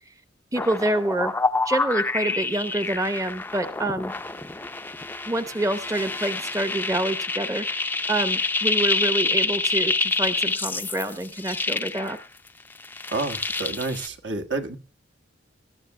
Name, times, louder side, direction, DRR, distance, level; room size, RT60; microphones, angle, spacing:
voice 1, 0.5-1.3 1.7-4.1 5.3-7.6 8.1-12.2, right 1 dB, 15° right, 10 dB, 0.8 m, -27 dB
sound 1, 0.6-12.5 12.8-14.1, left 3 dB, 10° left, 0.5 m, -27 dB
voice 2, 13.1-14.8, right 3 dB, 65° right, 6 dB, 1.4 m, -29 dB
20.0 x 12.5 x 2.2 m, 0.32 s
head